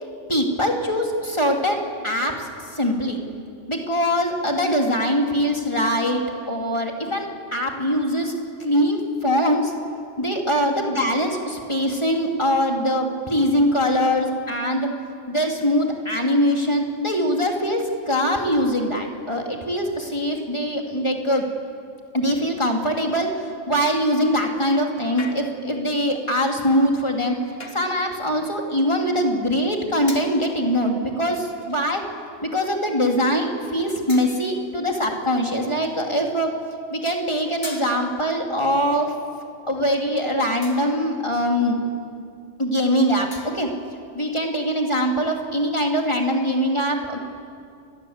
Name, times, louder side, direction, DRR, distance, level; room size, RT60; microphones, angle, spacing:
voice 1, 0.3-3.2 3.7-8.3 8.6-9.7 10.2-14.9 15.3-21.5 22.1-27.3 27.7-32.0 32.4-36.5 36.9-39.1 39.7-41.8 42.6-43.7 44.1-47.2, equal, 20° left, 1 dB, 3.0 m, -22 dB
sound 1, 25.2-25.8 27.6-28.0 30.1-30.5 31.6-32.0 32.7-32.8 34.1-34.7 37.6-38.4 40.6-41.1 43.3-43.8, left 2 dB, 45° left, 2.7 m, -40 dB
29.0 x 22.0 x 8.2 m, 2.4 s
omnidirectional pair, 1.3 m